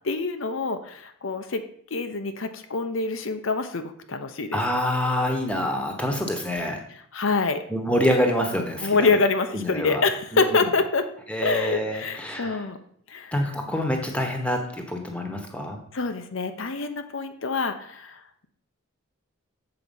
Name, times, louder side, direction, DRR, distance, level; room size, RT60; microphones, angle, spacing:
voice 1, 0.0-1.6 1.9-4.6 7.1-7.6 8.8-11.1 11.4-12.8 13.1-13.3 15.9-18.5, left 3 dB, 70° left, 7 dB, 0.8 m, -26 dB
voice 2, 4.5-6.8 7.7-9.1 9.5-10.0 10.3-10.5 11.3-12.6 13.3-15.8, equal, 5° left, 3 dB, 1.3 m, -26 dB
7.8 x 4.8 x 7.2 m, 0.64 s
head